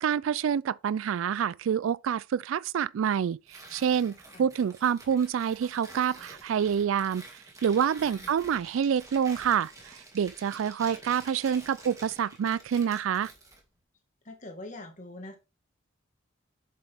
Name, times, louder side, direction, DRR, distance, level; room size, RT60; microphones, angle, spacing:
voice 1, 0.0-7.2 7.6-13.3, right 8 dB, 90° right, 0.3 m, -27 dB
Tearing, 3.5-13.6, right 2 dB, 15° right, 2.2 m, -49 dB
voice 2, 14.3-15.4, left 2 dB, 40° left, 1.9 m, -43 dB
7.5 x 6.9 x 3.6 m
head